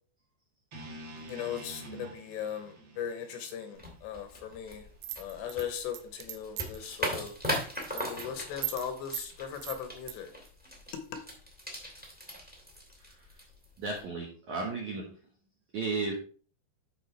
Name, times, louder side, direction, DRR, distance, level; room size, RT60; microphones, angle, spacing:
sound 1, 0.7-4.8, right 1 dB, 50° right, 1.6 m, -48 dB
voice 1, 1.3-4.9 5.2-7.3 7.9-10.3 10.9-11.2, left 8 dB, 75° left, 7 dB, 2.8 m, -38 dB
sound 2, 3.8-14.0, equal, 5° right, 0.7 m, -40 dB
sound 3, 5.0-6.9 7.3-7.5 7.8-8.3 8.6-8.9 9.1-9.3 9.6-10.1, right 14 dB, 90° right, 3.3 m, -37 dB
voice 2, 13.8-15.2 15.7-16.2, right 3 dB, 70° right, -1 dB, 1.8 m, -34 dB
13.5 x 4.8 x 3.3 m, 0.41 s
omnidirectional pair, 5.4 m